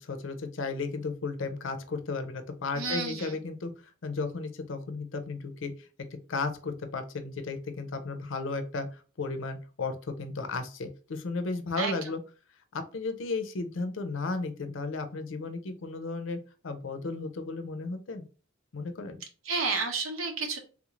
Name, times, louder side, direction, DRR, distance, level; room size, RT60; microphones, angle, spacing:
voice 1, 0.0-3.7 4.0-5.9 6.3-12.2 12.7-18.3 18.7-19.2, left 3 dB, 65° left, 8 dB, 0.5 m, -34 dB
voice 2, 2.8-3.4 11.8-11.9 19.4-20.6, right 4 dB, 80° right, 3 dB, 0.8 m, -31 dB
3.5 x 2.4 x 3.0 m, 0.36 s
head